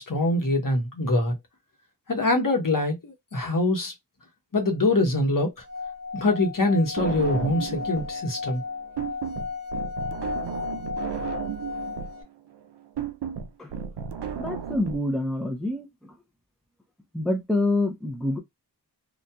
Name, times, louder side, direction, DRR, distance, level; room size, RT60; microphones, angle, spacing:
voice 1, 0.0-1.3 2.1-3.9 4.5-5.5 6.1-8.6, left 2 dB, 50° left, 1.1 m, -24 dB
Singing / Glass, 5.6-12.2, left 5 dB, 30° right, 1.0 m, -34 dB
sound 1, 7.0-8.2 8.5-15.0, right 8 dB, 75° right, 0.5 m, -34 dB
voice 2, 14.4-16.1 17.1-18.4, left 2 dB, ahead, 0.7 m, -27 dB
2.8 x 2.5 x 2.2 m
wide cardioid pair, 50°, 42 cm